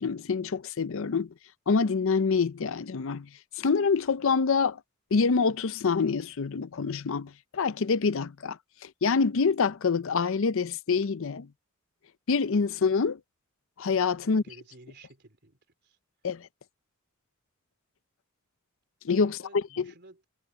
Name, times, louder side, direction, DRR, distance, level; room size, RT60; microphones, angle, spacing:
voice 1, 0.0-1.3 1.7-3.3 3.6-4.8 5.1-11.5 12.3-13.2 13.8-14.4 16.2-16.5 19.0-19.8, left 5 dB, 65° left, 0.6 m, -26 dB
voice 2, 14.2-16.0 19.2-20.3, right 2 dB, 55° right, 3.6 m, -53 dB
head